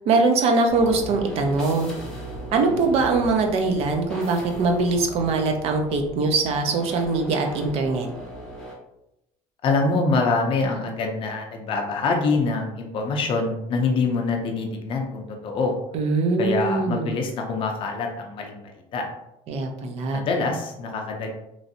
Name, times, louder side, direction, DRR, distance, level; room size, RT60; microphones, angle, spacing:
voice 1, 0.1-1.9 2.5-8.1 15.9-17.1 19.5-20.3, right 3 dB, 50° right, 4 dB, 0.5 m, -22 dB
sound 1, 0.7-8.7, right 1 dB, 5° left, 0.7 m, -38 dB
voice 2, 9.6-15.7 16.4-19.1 20.1-21.3, left 3 dB, 40° left, 2 dB, 0.5 m, -25 dB
3.1 x 2.6 x 2.6 m, 0.86 s
cardioid pair, 170°, 13 cm